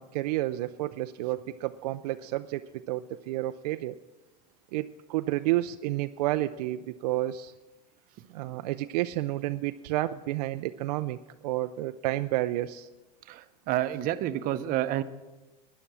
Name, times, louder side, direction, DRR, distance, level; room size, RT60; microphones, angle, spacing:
voice 1, 0.0-4.0 4.7-7.5 8.3-12.9, right 16 dB, 70° right, 10 dB, 0.5 m, -30 dB
voice 2, 13.3-15.0, right 13 dB, 45° right, 11 dB, 0.8 m, -29 dB
13.0 x 10.0 x 6.1 m, 1.1 s
supercardioid pair, 120°, 21 cm